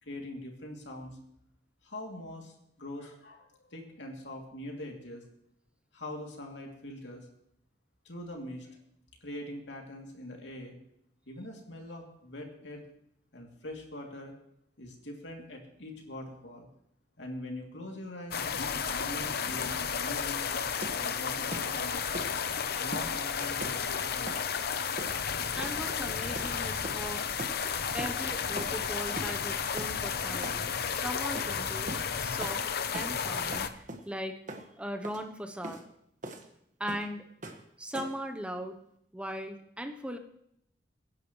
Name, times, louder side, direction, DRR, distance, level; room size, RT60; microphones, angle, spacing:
voice 1, 0.0-1.2 1.8-5.2 5.9-7.3 8.0-8.8 9.2-10.7 11.3-12.8 13.3-14.3 14.8-16.7 17.2-20.4 20.9-22.3 22.8-24.5, left 1 dB, 85° left, 1 dB, 2.7 m, -43 dB
sound 1, 18.3-33.7, left 6 dB, 60° left, 0.7 m, -33 dB
sound 2, 20.8-21.1 21.5-21.7 22.1-22.4 22.9-23.1 23.6-23.8 24.3-24.4 25.0-25.3 25.6-25.8 26.3-26.5 26.8-27.1 27.4-27.6 28.0-28.2 28.6-28.8 29.2-29.4 29.8-29.9 30.4-30.6 31.3-31.5 31.9-32.1 32.4-32.6 32.9-33.2 33.5-34.1 34.5-34.7 35.0-35.2 35.6-35.8 36.2-36.5 36.9-37.1 37.4-37.6 37.9-38.2, right 1 dB, 45° right, 1.5 m, -40 dB
voice 2, 25.6-27.2 27.9-32.7 32.9-34.4 34.8-35.8 36.8-37.2 37.8-38.8 39.1-40.2, equal, 5° right, 6 dB, 0.8 m, -39 dB
23.5 x 10.5 x 3.1 m, 0.75 s
head